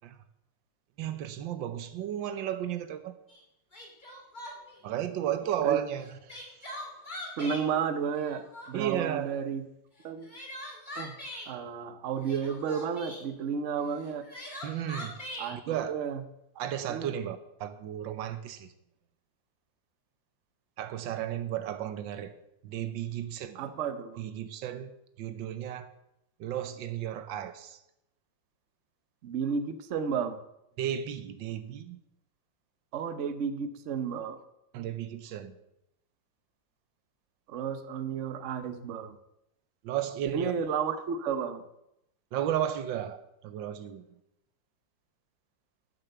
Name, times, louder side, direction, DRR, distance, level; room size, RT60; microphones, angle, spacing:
voice 1, 1.0-3.2 4.8-6.7 8.7-9.4 14.6-15.2 15.5-16.0 16.6-18.7 20.8-22.3 22.6-23.7 24.2-25.9 26.4-27.8 30.8-32.0 34.7-35.6 39.8-40.5 42.3-44.0, right 10 dB, 85° right, 1.5 m, -34 dB
Crying sobbing, 3.3-3.4 3.7-4.8 6.0-7.7 8.1-8.9 10.0-11.5 12.2-13.2 14.0-15.5, left 1 dB, 25° left, 2.5 m, -42 dB
voice 2, 7.4-9.6 10.0-10.3 11.0-11.2 11.5-14.3 15.4-15.6 15.9-16.2 16.9-17.1 23.5-24.2 29.2-30.4 32.9-34.4 37.5-39.2 40.3-41.6, right 6 dB, 50° right, 1.0 m, -32 dB
9.4 x 7.4 x 6.8 m
omnidirectional pair, 2.0 m